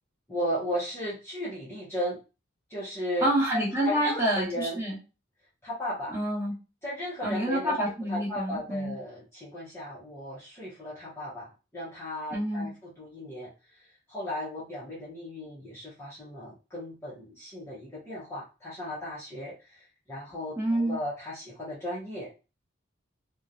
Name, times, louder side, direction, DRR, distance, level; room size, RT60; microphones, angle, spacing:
voice 1, 0.3-2.2 2.7-3.3 3.8-4.8 5.6-6.1 6.8-7.8 8.1-12.7 13.0-22.3, equal, 10° left, -9 dB, 0.8 m, -35 dB
voice 2, 3.2-5.0 6.1-6.5 7.2-8.9 12.3-12.7 20.6-21.0, right 1 dB, 10° right, -7 dB, 1.1 m, -28 dB
3.0 x 2.2 x 2.5 m, 0.31 s
head